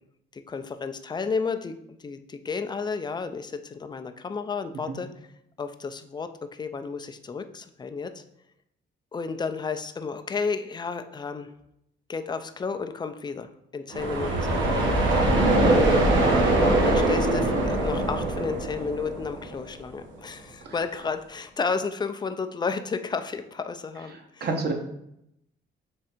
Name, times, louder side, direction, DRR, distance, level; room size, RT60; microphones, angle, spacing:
voice 1, 0.3-1.7 2.0-5.1 5.6-8.2 9.1-11.5 12.1-15.2 16.6-24.5, left 5 dB, 20° left, 9 dB, 0.4 m, -32 dB
sound 1, 13.9-19.7, right 2 dB, 75° right, 1.1 m, -22 dB
voice 2, 24.1-24.7, right 3 dB, 55° right, 3 dB, 0.9 m, -30 dB
3.7 x 3.2 x 4.3 m, 0.80 s
cardioid pair, 90°, 20 cm